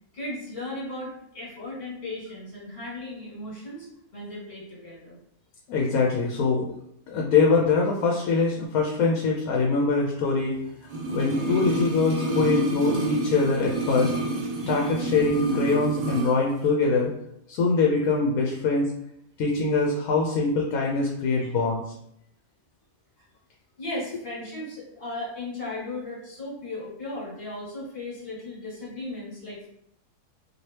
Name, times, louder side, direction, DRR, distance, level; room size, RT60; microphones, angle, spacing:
voice 1, 0.1-3.9 4.1-5.2 14.6-14.7 21.4-21.5 23.8-29.7, left 2 dB, 45° left, -7 dB, 1.8 m, -36 dB
voice 2, 5.7-6.7 7.1-10.6 11.1-14.1 14.6-17.1 17.5-18.9 19.4-21.8, left 4 dB, 85° left, -1 dB, 1.1 m, -23 dB
sound 1, 10.9-16.4 16.6-16.7, right 1 dB, 60° right, 0.5 m, -29 dB
3.2 x 2.7 x 2.8 m, 0.75 s
omnidirectional pair, 1.5 m